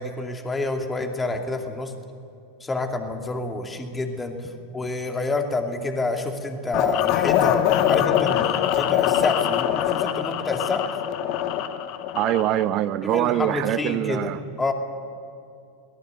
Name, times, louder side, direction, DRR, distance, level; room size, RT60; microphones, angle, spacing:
voice 1, 0.0-1.9 2.6-10.9 13.0-14.3 14.6-14.7, left 2 dB, 15° left, 4 dB, 2.5 m, -28 dB
sound 1, 6.7-12.7, left 11 dB, 45° left, 1.3 m, -23 dB
voice 2, 12.1-14.4, right 13 dB, 40° right, 15 dB, 0.9 m, -23 dB
22.5 x 19.5 x 8.2 m, 2.4 s
figure-of-eight pair, 90°, 0 cm